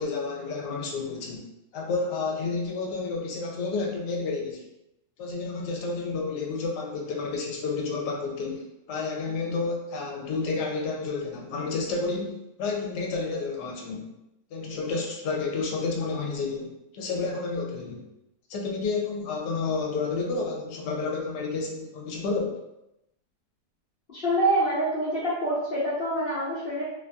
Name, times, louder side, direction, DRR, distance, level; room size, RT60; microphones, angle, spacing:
voice 1, 0.0-1.4 1.7-4.6 5.2-14.1 14.5-18.0 18.5-22.6, left 4 dB, 75° left, 0 dB, 1.2 m, -30 dB
voice 2, 24.1-26.8, right 1 dB, 50° left, -9 dB, 0.7 m, -26 dB
2.9 x 2.5 x 2.2 m, 0.88 s
omnidirectional pair, 1.9 m